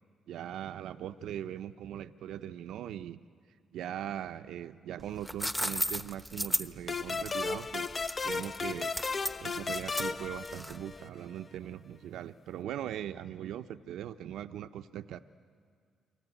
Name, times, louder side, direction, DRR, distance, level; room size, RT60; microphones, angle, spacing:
voice 1, 0.3-3.2 3.7-7.9 8.2-8.9 9.4-15.2, right 11 dB, 80° right, 10 dB, 0.6 m, -40 dB
sound 1, 5.0-11.0, equal, 5° left, 1.0 m, -35 dB
sound 2, 6.9-11.2, left 4 dB, 35° left, 0.7 m, -35 dB
28.0 x 23.5 x 9.1 m, 2.1 s
cardioid pair, 90°, 0 cm